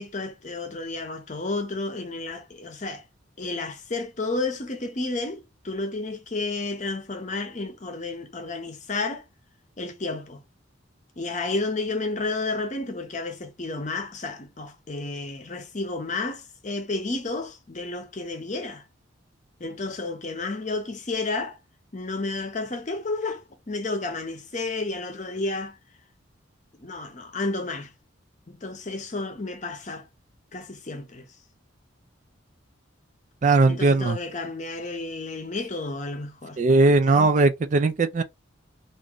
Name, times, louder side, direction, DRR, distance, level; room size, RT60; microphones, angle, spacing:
voice 1, 0.0-3.0 3.4-9.3 9.8-10.4 11.2-18.9 19.6-21.6 21.9-25.8 26.8-27.9 28.5-30.1 30.5-31.2 33.7-36.6 36.9-37.3, left 3 dB, 40° left, 0.7 m, -31 dB
voice 2, 33.4-34.2 36.6-38.2, right 3 dB, 40° right, 0.4 m, -19 dB
3.0 x 2.6 x 3.8 m
head